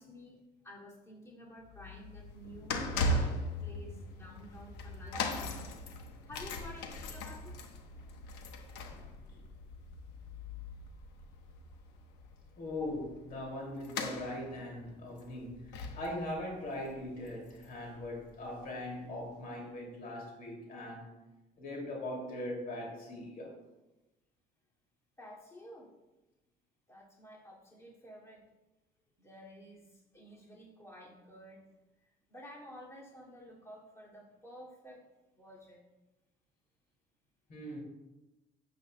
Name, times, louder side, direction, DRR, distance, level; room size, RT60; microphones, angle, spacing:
voice 1, 0.0-5.8 6.2-7.6 12.8-12.9 25.2-25.9 26.9-28.4 29.2-31.7 32.3-35.0 35.3-35.8, equal, 15° left, -5 dB, 2.3 m, -51 dB
sound 1, 1.6-18.0 18.2-18.5 19.3-19.4, left 1 dB, 90° left, 1.0 m, -39 dB
Engine, 3.3-9.2, right 2 dB, 5° right, 0.8 m, -55 dB
voice 2, 12.6-21.1 21.6-23.6 37.5-37.8, left 1 dB, 60° left, -1 dB, 2.4 m, -40 dB
12.0 x 7.6 x 2.2 m, 1.0 s
cardioid pair, 110°, 17 cm